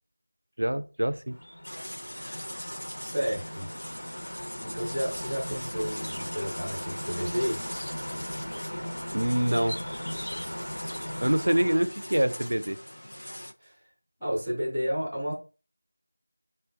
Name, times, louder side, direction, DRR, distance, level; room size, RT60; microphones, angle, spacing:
voice 1, 0.6-1.3 9.1-9.8 11.2-12.8, right 1 dB, 65° right, 0.4 m, -25 dB
sound 1, 1.3-11.8, equal, 60° left, 0.8 m, -38 dB
sound 2, 1.6-13.5, equal, 75° left, 0.5 m, -40 dB
voice 2, 3.0-3.7 4.6-7.6 13.6-13.8 14.2-15.3, equal, 5° right, 0.6 m, -31 dB
5.0 x 2.1 x 2.5 m
figure-of-eight pair, 175°, 0 cm